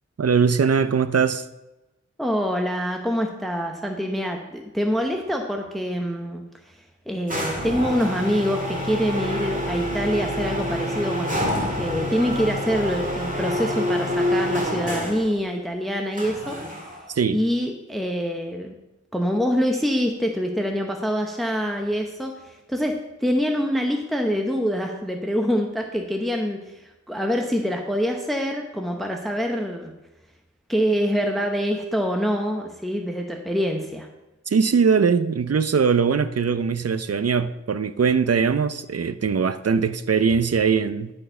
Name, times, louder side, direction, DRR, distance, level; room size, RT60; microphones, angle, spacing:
voice 1, 0.2-1.5 17.1-17.4 34.5-41.1, right 6 dB, 55° right, 12 dB, 0.5 m, -21 dB
voice 2, 2.2-6.8 7.1-11.4 11.8-17.0 17.3-18.7 19.1-29.9 30.7-34.1, equal, ahead, 3 dB, 0.8 m, -25 dB
sound 1, 7.3-15.3 16.2-17.1, left 1 dB, 25° right, 2.2 m, -27 dB
11.5 x 4.4 x 5.4 m, 0.99 s
wide cardioid pair, 40°, 29 cm